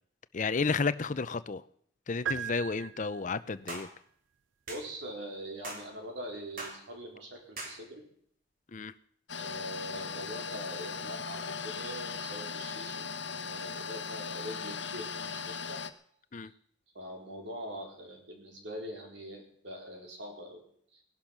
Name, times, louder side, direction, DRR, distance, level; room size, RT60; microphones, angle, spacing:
voice 1, 0.3-1.6 2.1-3.9 8.7-8.9 16.3-16.5, left 4 dB, 40° left, 15 dB, 0.6 m, -32 dB
sound 1, 2.3-3.6, right 8 dB, 85° right, 0.7 m, -37 dB
sound 2, 3.7-3.9 4.7-4.9 5.6-5.9 6.6-6.8 7.6-7.8, right 2 dB, 45° right, 3.2 m, -40 dB
voice 2, 4.7-8.0 9.4-15.8 16.4-16.5 16.9-20.6 20.9-21.0, equal, 70° right, 1 dB, 4.4 m, -43 dB
sound 3, 9.3-15.9, left 6 dB, 75° left, 1.1 m, -38 dB
18.0 x 11.5 x 6.0 m, 0.64 s
head